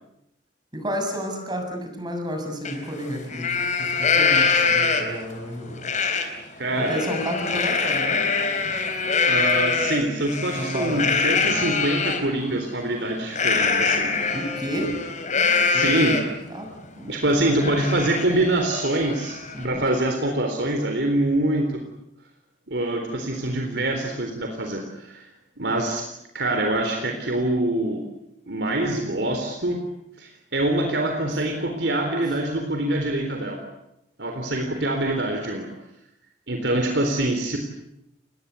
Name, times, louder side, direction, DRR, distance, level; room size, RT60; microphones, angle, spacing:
voice 1, 0.7-5.8 6.8-8.2 10.5-11.1 14.3-15.0 15.4-15.9 16.5-16.7 17.0-17.7 19.5-19.8, equal, 25° right, 4 dB, 7.0 m, -31 dB
Livestock farm animals working animals, 2.6-2.7 3.2-5.2 5.8-6.2 6.6-12.2 13.3-16.4 16.8-16.9 17.3-19.6, left 5 dB, 45° left, 4.3 m, -24 dB
voice 2, 6.6-7.0 9.3-14.3 15.6-16.2 17.1-21.8 22.7-25.3 25.6-26.0 26.3-28.0 28.5-29.8 30.2-33.6 34.2-35.7 36.5-37.6, right 1 dB, 70° right, 3 dB, 3.8 m, -25 dB
29.0 x 21.0 x 8.3 m, 0.83 s
head